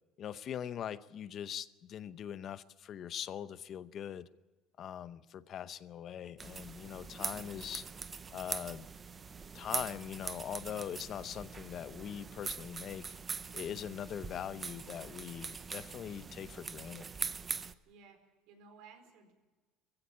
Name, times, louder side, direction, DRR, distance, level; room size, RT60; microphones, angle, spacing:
voice 1, 0.2-4.3 4.8-7.8 8.3-8.9 9.5-13.1 13.5-17.1, left 9 dB, 40° left, 0.7 m, -42 dB
sound 1, 6.4-17.7, right 5 dB, 20° right, 0.7 m, -42 dB
voice 2, 17.9-19.3, right 5 dB, 70° right, 4.3 m, -57 dB
21.5 x 15.5 x 8.6 m
cardioid pair, 155°, 0 cm